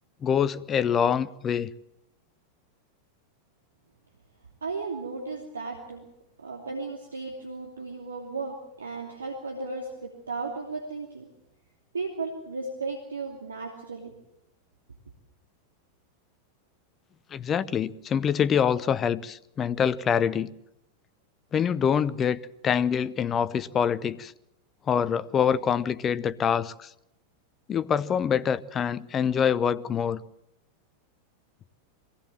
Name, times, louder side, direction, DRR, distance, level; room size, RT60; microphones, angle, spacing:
voice 1, 0.2-1.7 17.3-20.5 21.5-24.3 24.9-26.9 27.7-30.2, left 7 dB, 25° left, 0.7 m, -25 dB
voice 2, 4.6-6.1 6.4-11.3 11.9-14.1, right 3 dB, 75° right, 2.8 m, -35 dB
22.5 x 17.5 x 7.5 m
figure-of-eight pair, 90°, 0 cm